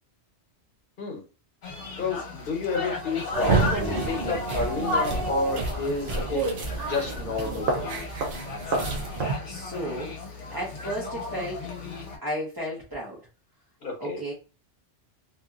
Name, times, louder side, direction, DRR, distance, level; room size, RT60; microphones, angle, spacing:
sound 1, 1.6-12.2, left 3 dB, 85° left, 1.2 m, -35 dB
voice 1, 2.0-6.4 6.8-8.1 13.8-14.2, left 3 dB, 50° left, 1 dB, 1.1 m, -30 dB
sound 2, 3.3-9.3, right 3 dB, 60° right, 0.7 m, -29 dB
voice 2, 9.4-11.7 12.2-13.2 14.0-14.3, equal, 20° right, -6 dB, 0.8 m, -34 dB
2.6 x 2.6 x 2.4 m, 0.33 s
omnidirectional pair, 1.2 m